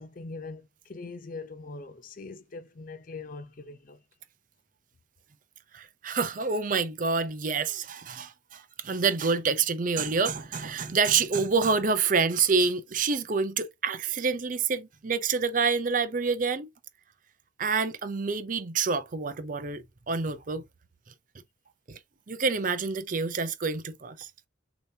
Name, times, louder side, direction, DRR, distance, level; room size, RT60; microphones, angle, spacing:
voice 1, 0.0-4.0, left 3 dB, 45° left, 0.5 m, -42 dB
voice 2, 5.7-16.7 17.6-20.6 21.9-22.0 22.3-24.3, right 5 dB, 40° right, 0.6 m, -27 dB
6.7 x 2.9 x 2.7 m
head